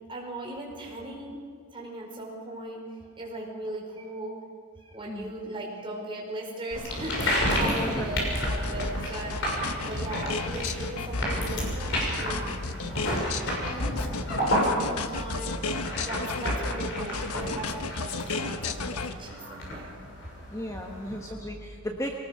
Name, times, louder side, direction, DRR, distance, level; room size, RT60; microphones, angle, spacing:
voice 1, 0.1-1.4 1.7-4.4 4.7-15.8 16.0-19.9, right 1 dB, 25° right, -2 dB, 5.0 m, -38 dB
sound 1, 6.7-21.3, equal, 55° left, 6.4 m, -31 dB
voice 2, 7.6-8.1 20.5-22.1, equal, 15° left, 1 dB, 1.2 m, -35 dB
sound 2, 8.5-19.1, left 3 dB, 90° left, 1.1 m, -33 dB
23.0 x 19.0 x 6.6 m, 2.1 s
head